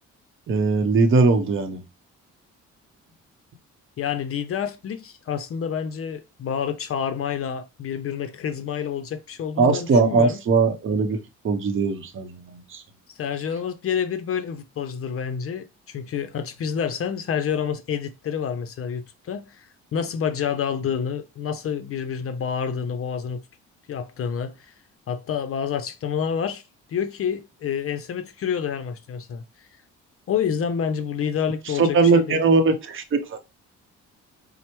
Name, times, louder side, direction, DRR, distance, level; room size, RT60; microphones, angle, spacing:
voice 1, 0.5-1.8 9.6-11.2 11.4-12.8 31.8-33.4, right 4 dB, 45° right, 0.7 m, -20 dB
voice 2, 4.0-10.4 13.2-23.4 23.9-24.7 25.1-26.6 26.9-29.4 30.3-32.4, left 7 dB, 50° left, 0.5 m, -28 dB
4.3 x 2.0 x 2.9 m
cardioid pair, 90°, 30 cm